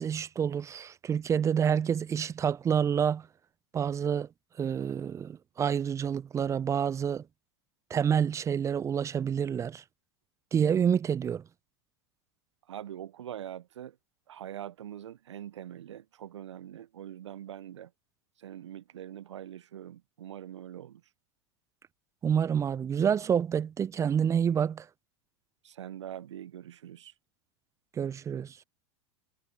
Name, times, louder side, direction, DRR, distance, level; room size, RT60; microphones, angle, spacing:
voice 1, 0.0-3.3 3.7-4.3 4.6-7.2 7.9-9.8 10.5-11.4 22.2-24.9 28.0-28.6, right 8 dB, 20° right, 0.4 m, -28 dB
voice 2, 12.7-14.0 14.3-17.9 18.4-21.0 25.6-27.1, right 11 dB, 80° right, 0.7 m, -43 dB
hypercardioid pair, 90°, 15 cm